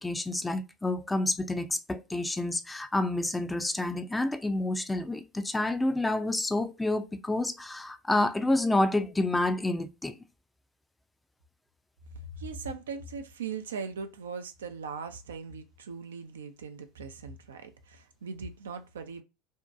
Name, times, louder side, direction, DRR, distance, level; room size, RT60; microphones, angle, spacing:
voice 1, 0.0-10.2, left 2 dB, 10° left, 0.4 m, -29 dB
voice 2, 12.3-19.2, right 5 dB, 80° right, 0.4 m, -39 dB
2.6 x 2.1 x 2.3 m
hypercardioid pair, 75°, 0 cm